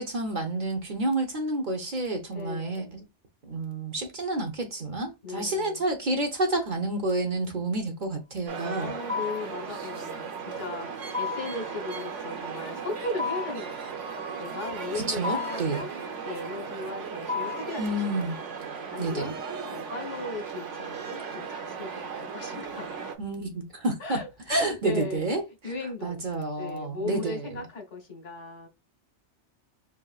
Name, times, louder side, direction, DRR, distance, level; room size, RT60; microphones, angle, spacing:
voice 1, 0.0-3.0 3.4-8.9 14.9-15.8 17.8-18.4 19.0-19.3 23.2-24.2 24.5-25.4 26.0-27.4, right 2 dB, 45° right, 0.9 m, -29 dB
voice 2, 2.3-3.0 5.2-5.9 8.8-18.3 18.9-19.3 19.7-22.9 24.0-25.4 25.6-26.3 26.6-28.7, left 3 dB, 75° left, 1.7 m, -37 dB
sound 1, 8.5-23.2, right 6 dB, 80° right, 1.2 m, -37 dB
sound 2, 9.1-9.6 11.1-11.6 13.2-13.7 15.2-15.7 17.3-17.8, left 5 dB, 25° right, 0.4 m, -32 dB
5.2 x 2.9 x 2.3 m
omnidirectional pair, 1.2 m